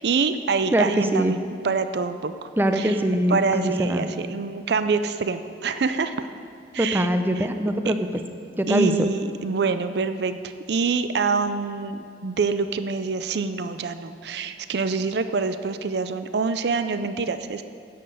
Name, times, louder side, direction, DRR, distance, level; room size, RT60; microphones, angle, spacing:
voice 1, 0.0-1.4 1.6-3.0 3.3-6.3 6.7-7.1 7.4-7.5 7.9-8.0 8.7-17.6, right 4 dB, 70° right, 11 dB, 0.5 m, -26 dB
voice 2, 0.7-1.3 2.6-4.1 6.8-8.2 8.6-9.1, equal, 10° right, 7 dB, 0.6 m, -22 dB
10.5 x 7.8 x 7.7 m, 2.4 s
head